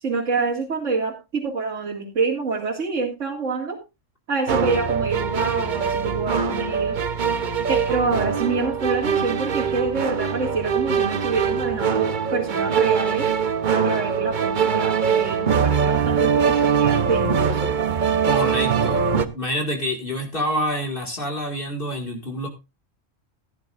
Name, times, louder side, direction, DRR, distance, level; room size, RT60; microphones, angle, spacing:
voice 1, 0.0-3.8 4.3-7.0 7.7-13.3 13.7-17.7, right 4 dB, 75° right, -5 dB, 2.4 m, -26 dB
sound 1, 4.5-19.3, right 6 dB, 45° right, 0.9 m, -22 dB
voice 2, 18.2-22.5, equal, 45° left, 2 dB, 2.3 m, -27 dB
16.5 x 10.5 x 2.5 m, 0.26 s
omnidirectional pair, 1.3 m